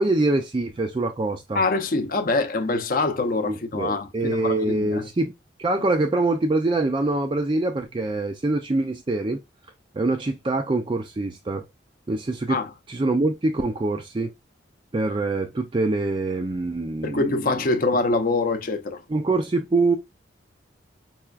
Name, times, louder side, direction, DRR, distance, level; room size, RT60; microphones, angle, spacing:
voice 1, 0.0-1.6 3.4-5.3 5.6-9.4 9.9-11.6 12.1-12.6 12.9-14.3 14.9-17.3 19.1-20.0, right 2 dB, 25° right, 0.4 m, -24 dB
voice 2, 1.5-5.1 12.5-12.7 17.0-19.0, left 3 dB, 50° left, 0.6 m, -24 dB
5.5 x 2.4 x 2.3 m
head